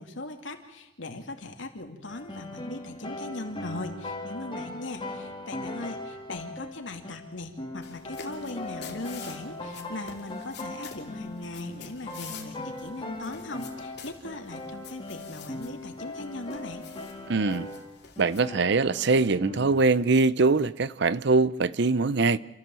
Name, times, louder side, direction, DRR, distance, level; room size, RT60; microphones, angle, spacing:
voice 1, 0.0-16.8, left 2 dB, 80° left, 2.5 m, -39 dB
sound 1, 2.1-17.9 18.2-19.8, left 2 dB, 25° left, 3.1 m, -39 dB
sound 2, 7.8-18.4, left 6 dB, 60° left, 2.7 m, -48 dB
voice 2, 17.3-17.7 18.2-22.4, right 3 dB, 65° right, 0.7 m, -23 dB
28.0 x 14.5 x 7.7 m
head